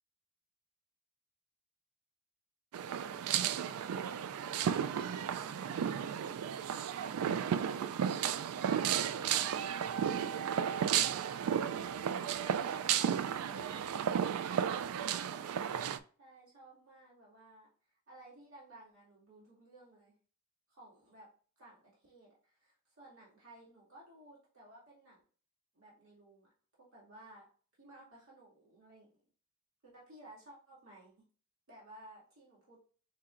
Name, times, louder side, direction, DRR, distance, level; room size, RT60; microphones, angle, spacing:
sound 1, 2.7-16.0, right 8 dB, 85° right, 0.3 m, -33 dB
voice 1, 4.3-6.4 7.3-8.3 9.9-11.4 16.2-17.7 18.1-20.1 20.7-21.3 21.6-25.2 25.7-26.5 26.8-27.4 27.8-29.1 29.8-31.1 31.7-32.8, right 1 dB, 70° right, -6 dB, 2.1 m, -56 dB
4.9 x 4.3 x 2.4 m, 0.42 s
head